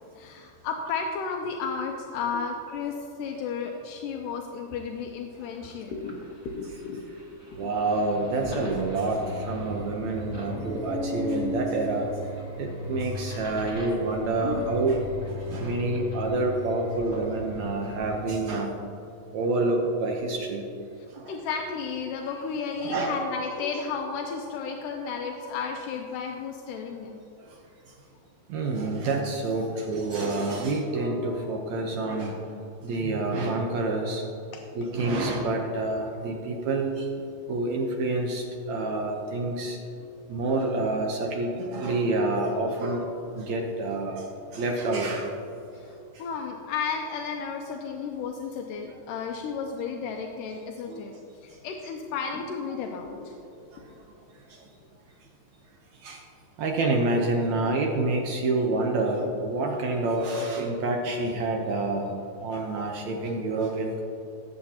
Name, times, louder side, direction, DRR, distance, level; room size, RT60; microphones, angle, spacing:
voice 1, 0.2-6.2 6.5-7.1 7.6-7.7 21.0-27.2 29.5-29.8 34.5-34.6 40.0-40.1 45.7-51.1 51.4-53.4 57.8-57.9, left 5 dB, 80° left, 2 dB, 2.1 m, -33 dB
sound 1, 5.4-5.5 5.7-18.3, left 1 dB, 15° right, 0.8 m, -36 dB
voice 2, 7.5-12.1 12.6-15.0 15.3-18.7 19.3-20.6 21.1-21.3 22.8-23.2 28.5-32.4 32.8-34.2 34.8-37.1 37.5-39.8 40.3-44.3 44.5-45.3 46.2-46.3 50.9-51.0 53.7-53.8 54.5-54.6 56.0-56.2 56.6-62.2 62.4-64.0, right 2 dB, 70° right, 1 dB, 1.8 m, -28 dB
18.0 x 7.8 x 2.8 m, 2.8 s
omnidirectional pair, 4.0 m